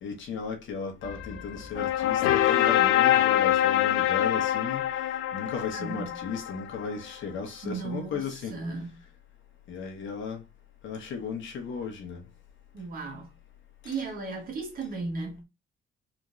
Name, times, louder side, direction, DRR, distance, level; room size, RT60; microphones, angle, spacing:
voice 1, 0.0-8.6 9.7-10.4 10.8-12.2 13.8-13.9, left 5 dB, 65° left, 1.3 m, -35 dB
sound 1, 1.0-6.9, left 12 dB, 90° left, 0.6 m, -25 dB
voice 2, 5.7-6.2 7.6-9.0 12.7-13.3 13.8-15.4, right 4 dB, 45° right, 1.4 m, -36 dB
4.1 x 3.2 x 2.5 m
cardioid pair, 175°, 21 cm